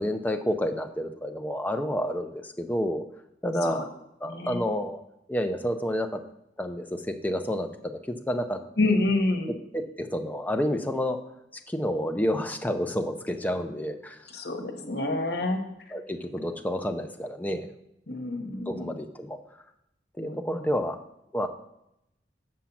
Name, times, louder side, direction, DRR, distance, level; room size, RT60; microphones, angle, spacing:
voice 1, 0.0-3.0 3.4-3.9 4.2-5.0 5.3-6.2 6.6-8.6 9.7-11.2 11.7-14.2 15.9-17.7 18.7-19.4 20.2-21.0 21.3-21.5, equal, 10° left, 5 dB, 0.6 m, -29 dB
voice 2, 4.2-4.6 8.8-9.5 14.3-15.6 18.1-18.9 20.2-20.4, left 2 dB, 65° left, 4 dB, 1.2 m, -27 dB
7.4 x 5.7 x 5.8 m, 0.82 s
head